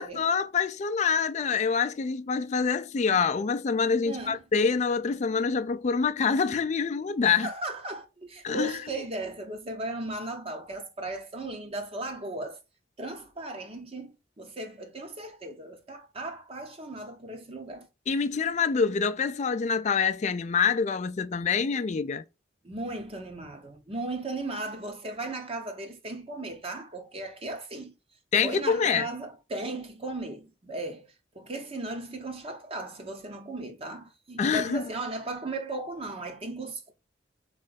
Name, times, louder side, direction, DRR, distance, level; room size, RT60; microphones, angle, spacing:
voice 1, 0.0-7.5 8.4-8.7 18.1-22.2 28.3-29.1 34.4-34.8, left 5 dB, 40° left, 0.4 m, -26 dB
voice 2, 4.0-4.4 7.4-12.6 13.0-17.9 22.6-27.9 28.4-36.9, right 2 dB, 35° right, 0.9 m, -36 dB
3.8 x 3.2 x 3.9 m
head